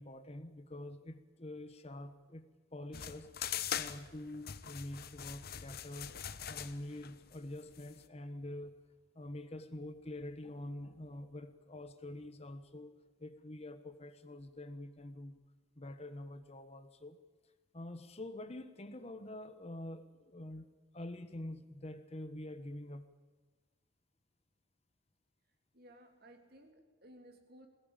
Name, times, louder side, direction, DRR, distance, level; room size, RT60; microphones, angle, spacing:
voice 1, 0.0-3.5 3.8-6.1 6.5-8.8 9.1-12.9 13.2-15.4 15.8-17.2 17.7-20.7 20.9-23.1, left 1 dB, 30° left, 10 dB, 1.2 m, -46 dB
sound 1, 2.9-8.0, left 9 dB, 50° left, 1.0 m, -42 dB
voice 2, 25.7-27.7, right 1 dB, 55° right, 5 dB, 3.3 m, -58 dB
21.5 x 18.0 x 9.0 m, 1.3 s
head